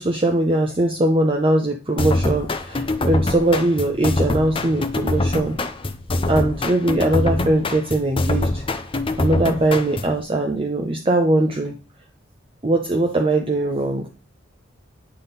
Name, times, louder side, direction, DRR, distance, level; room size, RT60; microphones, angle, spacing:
voice 1, 0.0-5.6 6.3-8.6 9.2-11.7 12.6-14.1, right 1 dB, 25° right, 2 dB, 0.8 m, -21 dB
sound 1, 2.0-10.2, left 2 dB, 25° left, 0.6 m, -24 dB
9.7 x 3.8 x 4.0 m, 0.33 s
head